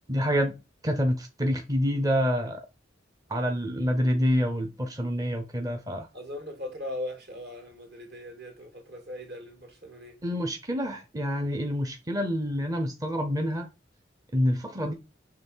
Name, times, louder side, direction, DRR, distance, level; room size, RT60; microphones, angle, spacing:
voice 1, 0.1-0.5 0.8-2.6 3.3-6.1 10.2-13.7 14.3-14.9, equal, 20° right, 0.7 m, -27 dB
voice 2, 6.1-10.2, left 1 dB, 60° right, 2.4 m, -39 dB
6.8 x 3.3 x 5.5 m
head